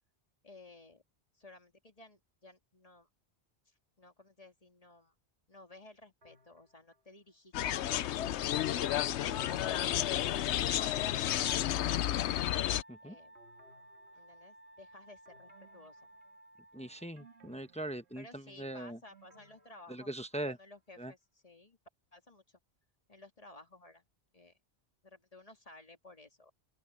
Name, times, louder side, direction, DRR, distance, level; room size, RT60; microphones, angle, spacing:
voice 1, 0.4-1.0 1.3-3.1 3.7-5.1 5.5-8.0 13.0-13.3 14.1-16.1 16.7-17.2 18.2-21.8 22.1-22.6 23.1-24.1 24.3-24.6 25.0-26.5, left 2 dB, 35° left, 2.6 m, -56 dB
sound 1, 6.2-7.0 7.6-9.1 9.5-10.9 11.2-12.9 13.4-14.7 15.3-16.7 17.2-20.4 20.7-20.8, right 3 dB, 75° right, 3.6 m, -64 dB
sound 2, 7.5-12.8, left 12 dB, 90° left, 0.9 m, -31 dB
Wind instrument woodwind instrument, 12.6-17.6, right 1 dB, 60° right, 7.1 m, -58 dB
voice 2, 16.7-19.0 19.9-20.6 21.0-21.1, right 1 dB, 5° left, 0.9 m, -41 dB
open air
omnidirectional pair, 1.1 m